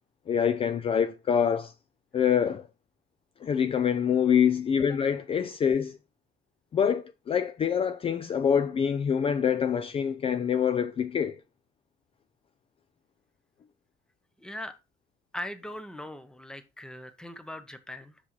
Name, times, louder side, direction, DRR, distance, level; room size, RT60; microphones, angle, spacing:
voice 1, 0.3-1.7 2.1-2.7 3.4-6.0 6.7-11.4, left 8 dB, 35° left, 0.4 m, -25 dB
voice 2, 14.4-14.8 15.3-18.2, left 1 dB, 5° left, 0.8 m, -40 dB
6.0 x 5.8 x 3.1 m
cardioid pair, 110°, 17 cm